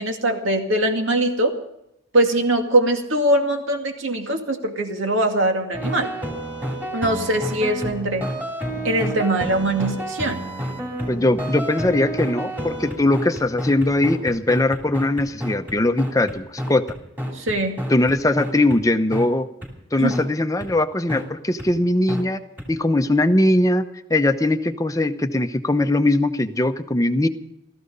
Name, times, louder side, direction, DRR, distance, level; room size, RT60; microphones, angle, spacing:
voice 1, 0.0-1.5 2.1-6.1 6.9-8.3 8.8-10.4 17.3-17.8 20.0-20.1, right 1 dB, 80° right, 4 dB, 2.2 m, -22 dB
sound 1, 5.7-18.8 19.1-19.2 19.6-19.7 20.1-20.2 20.6-20.7 21.1-21.2 21.6-21.7 22.1-22.2 22.6-22.7, equal, 10° right, 2.9 m, -29 dB
voice 2, 11.1-16.8 17.9-19.5 19.9-22.4 22.7-27.3, left 1 dB, 15° left, 8 dB, 0.7 m, -20 dB
16.5 x 14.0 x 5.4 m, 0.84 s
head